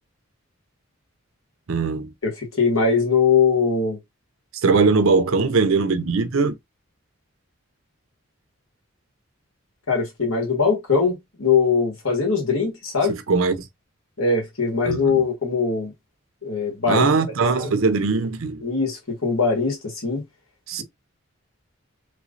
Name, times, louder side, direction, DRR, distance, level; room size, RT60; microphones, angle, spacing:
voice 1, 1.7-2.1 4.6-6.5 13.1-13.7 14.9-15.2 16.9-18.6 20.7-20.8, right 4 dB, 80° right, 0.6 m, -20 dB
voice 2, 2.2-4.0 9.9-13.2 14.2-15.9 16.4-17.1 17.6-17.7 18.6-20.2, left 5 dB, 80° left, 1.6 m, -21 dB
3.4 x 3.1 x 2.5 m
head